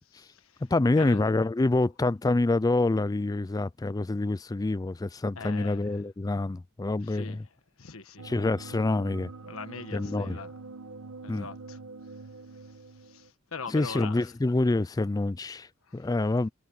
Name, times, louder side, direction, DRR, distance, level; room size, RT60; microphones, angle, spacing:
voice 1, 0.0-0.6 0.9-1.2 5.4-6.0 7.0-7.5 7.8-8.3 9.5-10.5 11.2-14.3 15.8-16.1, left 4 dB, 80° left, 1.4 m, -43 dB
voice 2, 0.7-7.4 8.2-9.3 9.9-10.4 11.3-11.5 13.7-15.7 15.9-16.5, left 2 dB, 15° left, 0.4 m, -26 dB
sound 1, 8.2-13.3, right 3 dB, 80° right, 1.3 m, -45 dB
head